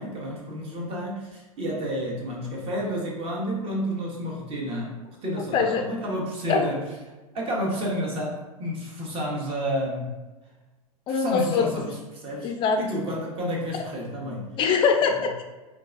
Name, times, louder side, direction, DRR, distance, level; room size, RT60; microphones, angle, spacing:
voice 1, 0.0-6.8 7.3-10.1 11.1-14.5, equal, 30° right, -2 dB, 1.0 m, -30 dB
voice 2, 5.5-5.8 6.5-6.7 11.1-11.7 12.4-12.8 14.6-15.4, left 5 dB, 25° left, 4 dB, 0.4 m, -22 dB
3.8 x 2.4 x 2.4 m, 1.2 s
hypercardioid pair, 100°, 19 cm